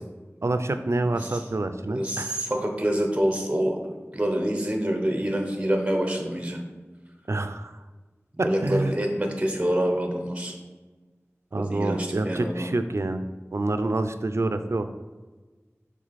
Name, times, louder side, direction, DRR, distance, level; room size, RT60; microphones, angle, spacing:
voice 1, 0.4-2.4 7.3-7.8 8.4-8.9 11.5-13.2 13.5-14.9, right 2 dB, 70° right, 9 dB, 0.4 m, -27 dB
voice 2, 1.9-3.8 4.1-6.6 8.4-10.5 11.5-12.7, right 1 dB, 25° right, 2 dB, 0.9 m, -26 dB
6.2 x 3.8 x 4.1 m, 1.3 s
wide cardioid pair, 45°, 5 cm